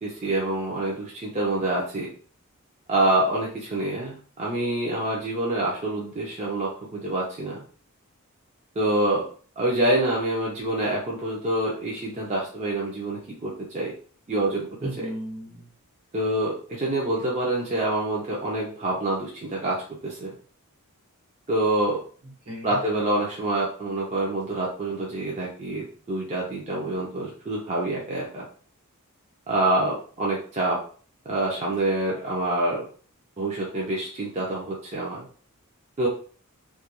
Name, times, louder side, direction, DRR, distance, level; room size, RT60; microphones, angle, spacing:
voice 1, 0.0-2.1 2.9-7.6 8.8-9.2 9.6-13.9 14.3-15.1 16.1-20.3 21.5-22.0 22.6-28.5 29.5-30.8 31.3-32.9 33.4-35.3 36.0-36.1, right 1 dB, 30° right, -4 dB, 0.4 m, -26 dB
voice 2, 14.8-15.7 22.2-22.8, equal, 70° right, -2 dB, 1.1 m, -36 dB
2.3 x 2.2 x 2.8 m, 0.43 s
head